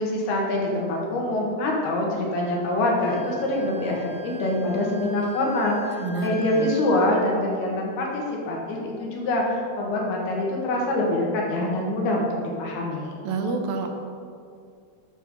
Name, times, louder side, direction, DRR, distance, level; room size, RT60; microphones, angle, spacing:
voice 1, 0.0-4.0 4.2-5.8 6.2-13.2, left 1 dB, 85° left, -2 dB, 3.6 m, -25 dB
Wind instrument woodwind instrument, 3.0-7.0, left 1 dB, 55° right, 4.1 m, -43 dB
voice 2, 6.0-6.7 13.2-13.9, right 3 dB, 75° right, 4 dB, 2.4 m, -28 dB
9.2 x 5.9 x 6.4 m, 2.3 s
omnidirectional pair, 4.4 m